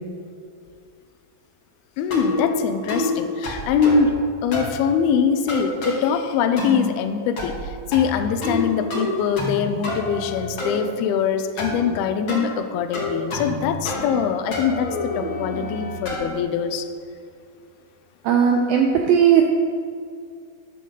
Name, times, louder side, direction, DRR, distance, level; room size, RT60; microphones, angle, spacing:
voice 1, 2.0-4.1 4.4-16.9, left 7 dB, 80° left, 8 dB, 2.3 m, -23 dB
sound 1, 2.1-2.5 2.9-3.1 3.4-4.1 4.5-4.8 5.5-6.0 6.6-6.9 7.4-7.7 7.9-8.6 8.9-9.6 9.8-10.7 11.6-11.8 12.3-12.5 12.9-13.6 13.9-14.2 14.5-16.3, left 1 dB, 35° left, 2.2 m, -27 dB
voice 2, 18.2-19.4, right 8 dB, 85° right, 2 dB, 2.0 m, -17 dB
14.0 x 11.0 x 4.0 m, 2.3 s
omnidirectional pair, 5.1 m